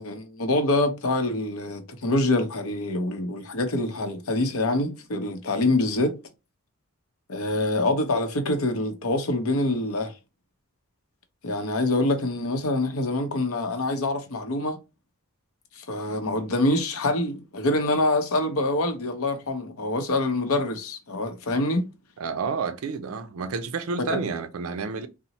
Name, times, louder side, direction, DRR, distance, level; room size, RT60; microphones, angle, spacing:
voice 1, 0.0-6.1 7.3-10.1 11.4-14.8 15.8-21.9 24.1-24.2, left 2 dB, 75° left, 0.7 m, -25 dB
voice 2, 22.2-25.1, right 4 dB, 75° right, 0.4 m, -30 dB
2.8 x 2.0 x 3.9 m
head